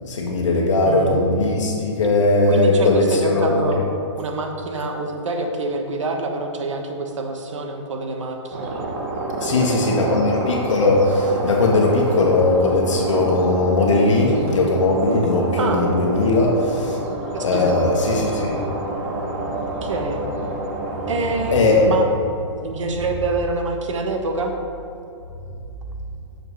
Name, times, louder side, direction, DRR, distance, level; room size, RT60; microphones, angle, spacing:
voice 1, 0.0-3.6 9.4-17.0 17.4-18.6 21.5-22.0, left 2 dB, 75° left, -1 dB, 1.2 m, -19 dB
voice 2, 0.8-1.2 2.5-3.8 4.1-8.7 9.5-10.2 15.6-15.9 17.3-17.7 19.8-20.2 21.1-22.1 22.6-24.6, right 3 dB, 75° right, 3 dB, 1.2 m, -26 dB
sound 1, 8.5-21.9, right 2 dB, 30° right, 1.0 m, -28 dB
6.6 x 4.8 x 5.6 m, 2.7 s
hypercardioid pair, 165°, 16 cm